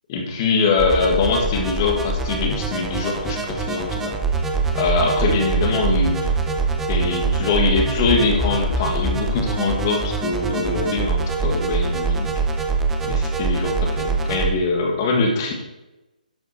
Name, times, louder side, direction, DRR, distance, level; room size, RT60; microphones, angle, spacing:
voice 1, 0.1-4.2 4.7-6.3 6.9-12.3 13.0-15.5, left 4 dB, 20° left, 1 dB, 1.5 m, -22 dB
sound 1, 0.8-14.5, right 3 dB, 5° right, 0.5 m, -24 dB
11.5 x 5.6 x 4.7 m, 1.0 s
hypercardioid pair, 175°, 5 cm